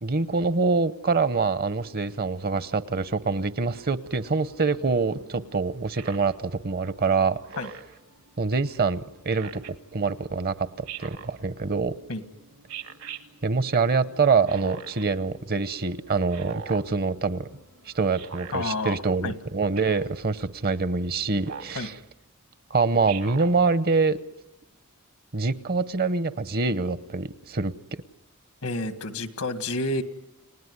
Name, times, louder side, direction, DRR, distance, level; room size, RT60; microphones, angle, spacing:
voice 1, 0.0-7.4 8.4-11.9 13.4-17.5 17.9-21.9 22.7-24.2 25.3-28.0, right 4 dB, 45° right, 14 dB, 0.8 m, -25 dB
sound 1, 1.7-19.5, right 1 dB, 85° right, 6.4 m, -56 dB
Speech synthesizer, 6.0-6.3 7.5-8.0 9.3-9.7 10.9-11.3 12.7-13.2 14.5-15.0 16.3-16.8 18.1-18.5 19.7-20.1 21.4-21.8 23.0-23.5, right 7 dB, 70° right, 1.7 m, -39 dB
voice 2, 18.5-19.0 19.2-19.4 21.7-21.9 28.6-30.0, left 2 dB, 85° left, 10 dB, 1.8 m, -29 dB
30.0 x 18.0 x 9.6 m, 0.95 s
head